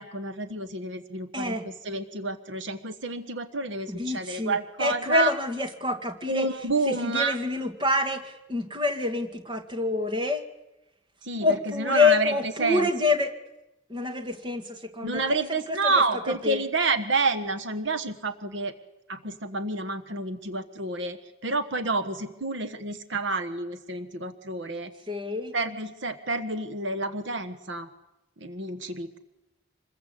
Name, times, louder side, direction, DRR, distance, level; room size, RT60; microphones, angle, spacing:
voice 1, 0.0-5.3 6.3-7.4 11.2-12.3 12.6-12.9 15.0-18.7 19.1-21.2 21.4-24.9 25.5-27.9 28.4-29.2, right 3 dB, 65° right, 10 dB, 1.4 m, -29 dB
voice 2, 1.3-1.7 3.9-6.5 6.9-10.4 11.4-13.3 13.9-16.0 16.4-16.6 25.1-25.5, left 3 dB, 25° right, 6 dB, 2.0 m, -27 dB
26.5 x 21.5 x 8.4 m, 0.94 s
head